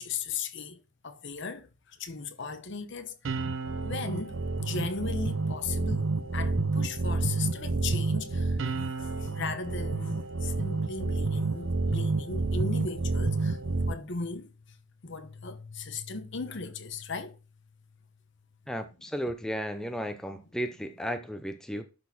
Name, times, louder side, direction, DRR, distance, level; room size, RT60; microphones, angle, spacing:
voice 1, 0.0-3.1 3.8-13.6 13.9-14.8 15.0-17.4, left 4 dB, 55° left, 1.0 m, -37 dB
sound 1, 3.2-13.9, right 3 dB, 60° right, 0.7 m, -29 dB
voice 2, 18.7-21.8, equal, 5° left, 0.5 m, -34 dB
11.5 x 4.2 x 4.2 m
head